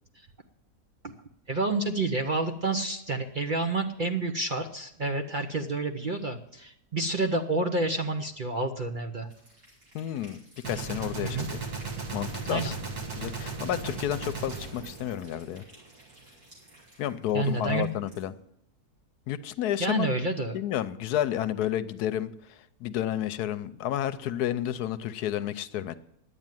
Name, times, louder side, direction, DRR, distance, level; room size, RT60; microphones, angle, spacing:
voice 1, 1.5-9.3 11.2-11.5 12.5-12.7 17.3-17.9 19.8-20.6, right 2 dB, 45° right, 5 dB, 0.7 m, -29 dB
sound 1, 9.2-18.2, right 1 dB, 90° right, 5.8 m, -56 dB
voice 2, 9.9-11.6 12.1-12.7 13.2-15.6 17.0-18.3 19.3-20.1 20.5-26.0, left 11 dB, 80° left, 14 dB, 1.2 m, -31 dB
Gunshot gunfire, 10.6-15.9, right 4 dB, 70° right, 2.2 m, -36 dB
10.5 x 8.5 x 9.1 m, 0.77 s
omnidirectional pair, 1.7 m